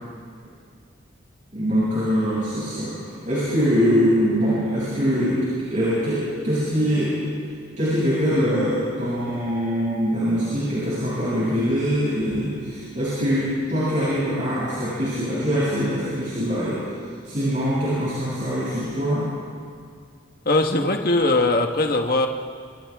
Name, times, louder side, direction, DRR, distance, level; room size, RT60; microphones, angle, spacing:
voice 1, 1.5-3.0 3.2-5.4 5.7-7.2 7.8-16.9 17.2-19.3, equal, 40° right, -10 dB, 7.3 m, -23 dB
voice 2, 20.4-22.3, left 2 dB, 50° left, 3 dB, 1.5 m, -20 dB
27.5 x 27.5 x 3.7 m, 2.2 s
head